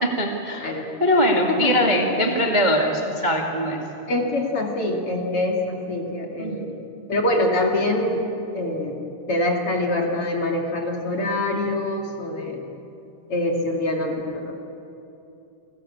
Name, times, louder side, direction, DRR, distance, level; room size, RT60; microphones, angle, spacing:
voice 1, 0.0-0.7 1.0-3.8 6.4-6.6, equal, 20° right, 1 dB, 1.3 m, -21 dB
voice 2, 4.1-6.7 7.1-8.2 8.5-9.0 9.3-12.6 13.3-14.5, left 1 dB, 40° left, 1 dB, 2.8 m, -24 dB
30.0 x 19.5 x 8.6 m, 2.9 s
omnidirectional pair, 4.7 m